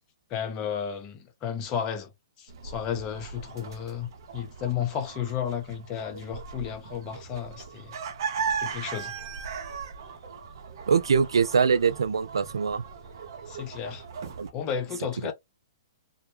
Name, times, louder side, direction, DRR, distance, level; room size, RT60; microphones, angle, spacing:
voice 1, 0.3-2.1 2.4-4.1 4.3-8.0 8.6-9.1 13.5-14.0 14.5-15.3, left 8 dB, 30° left, 0.7 m, -33 dB
sound 1, 2.5-14.5, right 6 dB, 60° right, 0.7 m, -38 dB
voice 2, 10.9-12.8 14.4-14.5, right 6 dB, 80° right, 0.3 m, -23 dB
2.1 x 2.1 x 3.1 m
hypercardioid pair, 130°, 2 cm